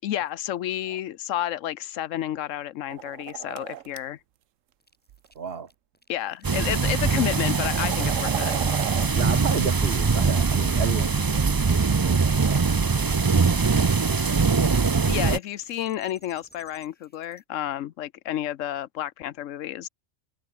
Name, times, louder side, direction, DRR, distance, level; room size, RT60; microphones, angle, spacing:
voice 1, 0.0-4.2 6.1-8.7 15.1-19.9, left 12 dB, 80° left, 1.1 m, -31 dB
sound 1, 2.9-4.0 5.1-5.3 6.2-6.3 6.8-9.1, right 12 dB, 85° right, 1.1 m, -35 dB
sound 2, 4.8-17.4, equal, 5° left, 5.3 m, -55 dB
voice 2, 5.3-5.7 9.1-12.6 13.0-13.1, right 6 dB, 50° right, 1.5 m, -33 dB
sound 3, 6.4-15.4, right 4 dB, 35° right, 0.3 m, -22 dB
omnidirectional pair, 1.3 m